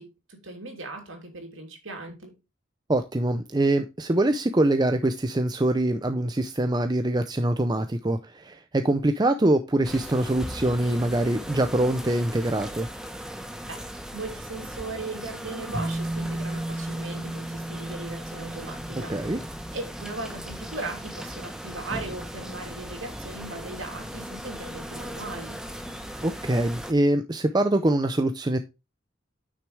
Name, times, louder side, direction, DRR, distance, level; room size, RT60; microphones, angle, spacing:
voice 1, 0.0-2.3 13.7-19.1 19.7-25.6, right 2 dB, 75° right, 3.0 m, -38 dB
voice 2, 2.9-12.9 19.1-19.4 26.2-28.6, right 1 dB, 20° right, 0.5 m, -24 dB
sound 1, 9.8-26.9, equal, 5° right, 0.9 m, -38 dB
sound 2, 15.7-22.3, right 1 dB, 55° right, 4.2 m, -36 dB
9.6 x 6.1 x 3.3 m
head